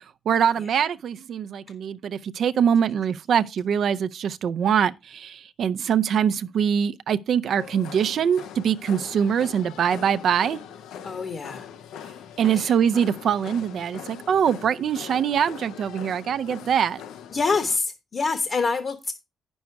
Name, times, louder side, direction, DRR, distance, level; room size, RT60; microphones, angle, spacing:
voice 1, 0.3-10.6 12.4-17.0, right 8 dB, 65° right, 0.5 m, -23 dB
sound 1, 7.6-17.8, left 8 dB, 85° left, 0.6 m, -41 dB
voice 2, 11.0-11.7 12.5-12.7 17.3-19.1, left 4 dB, 45° left, 1.0 m, -26 dB
9.4 x 6.2 x 4.6 m
cardioid pair, 90°, 0 cm